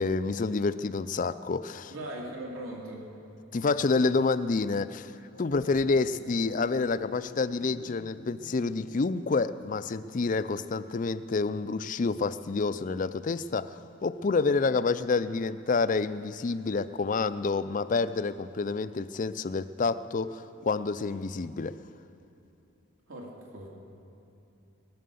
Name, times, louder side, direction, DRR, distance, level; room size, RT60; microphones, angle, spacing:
voice 1, 0.0-1.9 3.5-5.1 5.4-21.8, left 4 dB, 35° left, 14 dB, 0.4 m, -28 dB
voice 2, 1.9-3.0 23.1-23.7, right 1 dB, 70° right, -2 dB, 2.9 m, -39 dB
sound 1, 5.2-9.7, left 4 dB, 70° left, 0.7 m, -49 dB
19.0 x 11.0 x 6.9 m, 2.9 s
head